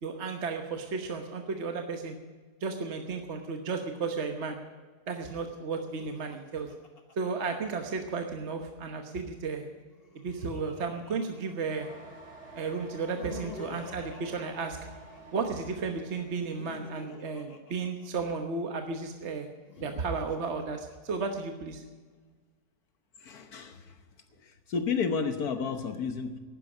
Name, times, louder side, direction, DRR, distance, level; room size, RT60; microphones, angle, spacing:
voice 1, 0.0-2.2 2.6-4.6 5.1-6.7 7.2-9.7 10.1-11.9 12.6-14.8 15.3-19.5 19.8-21.8, right 4 dB, 45° right, 5 dB, 1.3 m, -33 dB
Laughter, 5.8-8.3 9.7-12.0 12.9-15.4 16.3-18.7 19.5-21.5, left 4 dB, 35° left, 1.7 m, -49 dB
sound 1, 11.7-17.0, right 2 dB, 85° right, 5.8 m, -50 dB
voice 2, 23.2-23.9 24.4-26.4, left 5 dB, 70° left, 8 dB, 1.6 m, -32 dB
11.5 x 9.9 x 9.7 m, 1.4 s
omnidirectional pair, 1.7 m